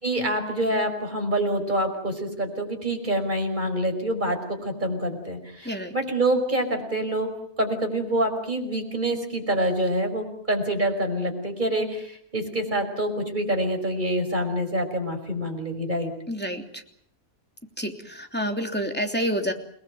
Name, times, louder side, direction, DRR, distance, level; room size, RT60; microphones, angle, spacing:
voice 1, 0.0-7.3 7.6-16.1, right 1 dB, 35° right, 4 dB, 5.5 m, -26 dB
voice 2, 16.3-16.8 17.8-19.5, equal, 5° left, 4 dB, 3.1 m, -28 dB
29.5 x 20.0 x 8.0 m, 0.64 s
omnidirectional pair, 1.4 m